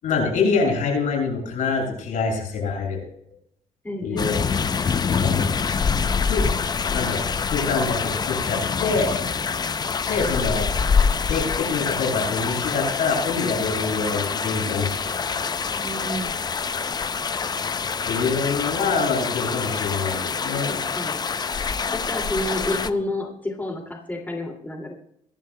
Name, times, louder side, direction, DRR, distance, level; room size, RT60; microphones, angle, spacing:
voice 1, 0.0-3.0 4.0-4.4 5.1-5.5 6.3-6.4 6.9-9.2 10.1-10.7 11.3-15.0 15.3-15.5 18.1-20.8, left 4 dB, 75° left, 0 dB, 6.4 m, -25 dB
voice 2, 3.8-4.3 15.8-16.4 20.9-21.2 21.9-24.9, left 1 dB, 15° left, 0 dB, 2.3 m, -29 dB
sound 1, 4.2-22.9, left 5 dB, 30° left, 0.5 m, -25 dB
23.0 x 11.5 x 2.2 m, 0.72 s
cardioid pair, 100°, 14 cm